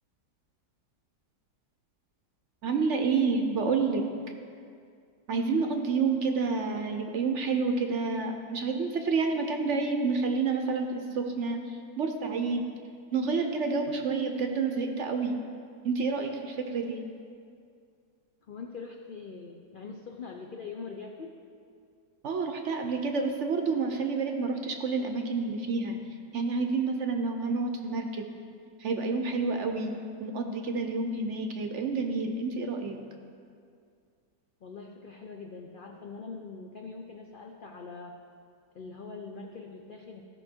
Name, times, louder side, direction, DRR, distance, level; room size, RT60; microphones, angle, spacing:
voice 1, 2.6-4.3 5.3-12.6 13.1-15.4 15.8-17.0 22.2-26.0 26.3-28.3 28.8-29.9 30.2-33.0, right 4 dB, 60° right, 4 dB, 0.8 m, -29 dB
voice 2, 18.5-21.3 34.6-38.2 38.7-40.2, left 4 dB, 85° left, 2 dB, 0.4 m, -43 dB
15.0 x 6.1 x 4.4 m, 2.3 s
omnidirectional pair, 1.7 m